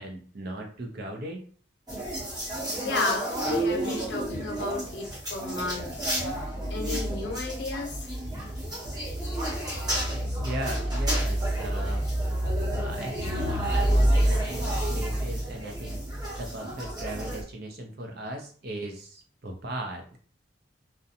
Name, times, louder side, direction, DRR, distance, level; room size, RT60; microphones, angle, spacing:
voice 1, 0.0-1.4 10.3-12.1 12.8-16.1 16.4-20.2, right 1 dB, 60° right, 2 dB, 0.6 m, -37 dB
sound 1, 1.9-17.4, right 1 dB, 20° right, 0.9 m, -29 dB
voice 2, 2.8-8.1, left 3 dB, 65° left, 1 dB, 0.7 m, -33 dB
2.5 x 2.1 x 2.7 m, 0.43 s
head